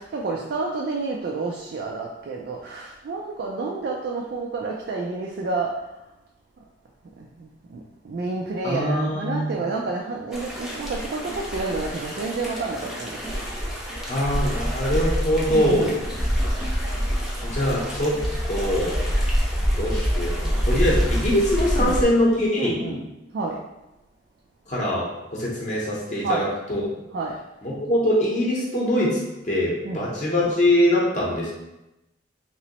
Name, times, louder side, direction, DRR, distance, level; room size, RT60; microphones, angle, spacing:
voice 1, 0.0-5.9 7.2-13.4 15.5-16.0 21.8-22.0 22.6-23.0 23.3-23.6 26.2-26.5 27.1-27.4 29.8-30.1, right 3 dB, 55° right, -1 dB, 0.3 m, -29 dB
voice 2, 8.6-9.6 14.1-15.9 17.5-18.2 18.5-18.9 19.8-23.0 24.7-25.1 25.3-26.9 27.6-29.2 29.4-31.5, left 1 dB, 40° left, -5 dB, 0.7 m, -23 dB
sound 1, 10.3-22.0, equal, ahead, 0.5 m, -26 dB
3.0 x 3.0 x 2.9 m, 0.96 s
head